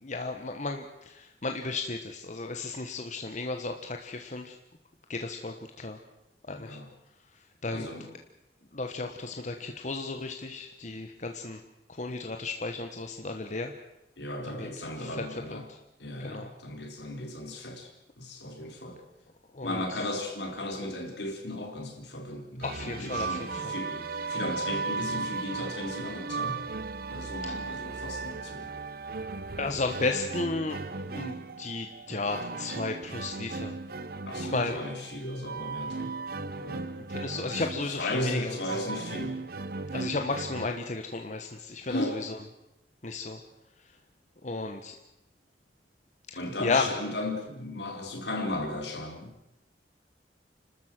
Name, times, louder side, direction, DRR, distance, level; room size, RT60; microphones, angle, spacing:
voice 1, 0.0-4.6 5.1-6.0 6.5-6.8 7.3-7.9 8.7-11.6 11.9-13.7 14.5-15.2 15.5-15.8 16.2-16.5 19.5-20.0 22.6-23.7 27.4-27.6 29.6-30.8 31.1-33.8 34.4-34.8 37.1-38.6 39.9-42.4 43.0-43.4 44.4-45.0 46.3-46.9, left 3 dB, 45° left, 4 dB, 1.2 m, -34 dB
voice 2, 6.5-6.9 7.7-8.2 14.2-15.7 16.0-17.9 18.2-19.0 19.6-26.6 27.1-28.7 34.3-36.2 36.6-36.9 38.0-39.4 41.9-42.2 46.4-49.4, left 1 dB, 75° left, 3 dB, 4.3 m, -36 dB
sound 1, 22.6-40.7, right 4 dB, 55° right, 0.9 m, -36 dB
29.5 x 13.0 x 7.6 m, 0.92 s
head